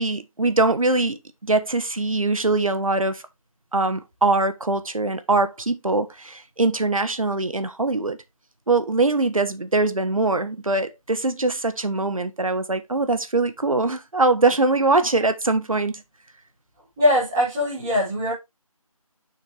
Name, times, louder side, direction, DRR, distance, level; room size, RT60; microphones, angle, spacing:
voice 1, 0.0-3.2 3.7-8.2 8.7-15.9, right 3 dB, 65° right, 1.3 m, -22 dB
voice 2, 17.0-18.3, left 1 dB, 5° right, 1.4 m, -21 dB
6.5 x 6.3 x 3.4 m
figure-of-eight pair, 175°, 18 cm